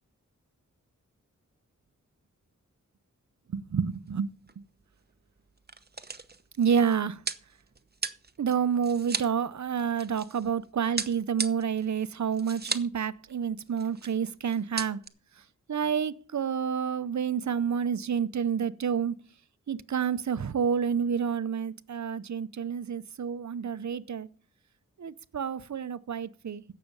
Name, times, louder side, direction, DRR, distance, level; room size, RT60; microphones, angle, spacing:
voice 1, 3.5-4.3 6.6-7.2 8.4-15.0 15.7-19.1 19.7-24.3 25.0-26.6, right 7 dB, 60° right, 0.7 m, -29 dB
sound 1, 4.0-4.2 4.5-4.6 5.4-10.5 11.0-13.0 13.3-13.4 13.6-14.1 14.5-15.1, right 4 dB, 30° right, 0.8 m, -36 dB
16.0 x 6.8 x 5.4 m
wide cardioid pair, 55°, 32 cm